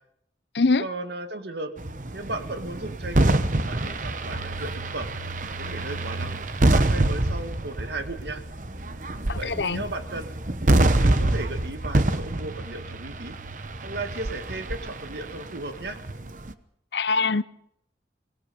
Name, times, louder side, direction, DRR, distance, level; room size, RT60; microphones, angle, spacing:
voice 1, 0.8-1.8 2.1-5.1 5.6-8.4 9.4-10.3 11.0-13.4 13.8-16.0, right 2 dB, 70° right, 1.9 m, -35 dB
sound 1, 1.8-16.5, right 1 dB, 45° right, 1.0 m, -26 dB
voice 2, 9.3-9.8 16.9-17.4, left 4 dB, 70° left, 0.7 m, -23 dB
25.0 x 20.0 x 5.3 m
head